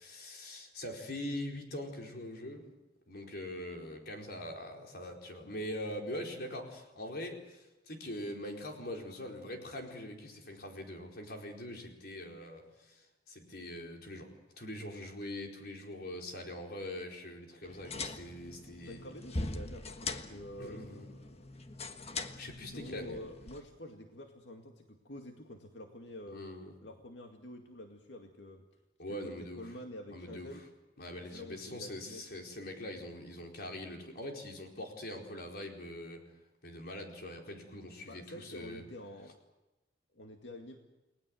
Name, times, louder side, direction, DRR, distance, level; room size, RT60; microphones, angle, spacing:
voice 1, 0.0-2.6 3.1-19.1 20.6-21.1 22.3-23.2 26.3-26.7 29.0-29.7 30.1-30.6 31.0-36.2 36.6-38.8, left 1 dB, 60° left, 2 dB, 4.6 m, -43 dB
sound 1, 17.6-23.6, left 3 dB, 35° left, 1.4 m, -42 dB
voice 2, 18.9-21.7 22.7-26.4 26.8-28.7 29.1-30.7 31.3-32.2 38.1-39.4 40.1-40.8, left 1 dB, 85° left, 3 dB, 2.2 m, -48 dB
30.0 x 20.0 x 7.9 m, 1.0 s
head